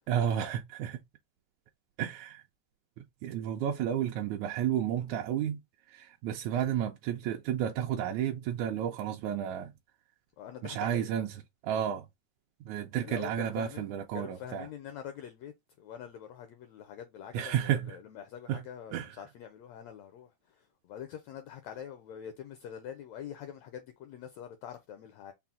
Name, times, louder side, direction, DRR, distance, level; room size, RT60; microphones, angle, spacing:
voice 1, 0.1-1.0 2.0-2.4 3.2-5.6 5.9-9.7 10.6-11.3 11.6-12.1 12.7-14.7 17.3-18.0 18.5-18.6 18.9-19.1, right 10 dB, 75° right, 1.8 m, -31 dB
voice 2, 10.4-11.1 13.0-25.3, left 9 dB, 80° left, 1.5 m, -45 dB
5.7 x 2.0 x 3.6 m
omnidirectional pair, 3.6 m